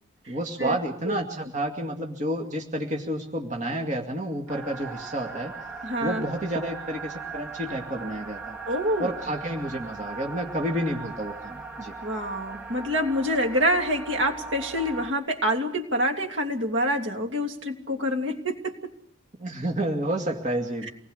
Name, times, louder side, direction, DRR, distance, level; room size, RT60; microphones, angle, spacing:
voice 1, 0.3-5.6 6.0-8.6 9.0-11.9 19.4-20.9, right 1 dB, 35° right, 2 dB, 2.3 m, -30 dB
sound 1, 4.5-15.1, right 4 dB, 5° right, 3.9 m, -39 dB
voice 2, 5.8-6.2 8.7-9.1 12.0-18.7 20.8-20.9, equal, 65° right, 3 dB, 3.1 m, -26 dB
27.5 x 20.0 x 6.7 m, 0.62 s
head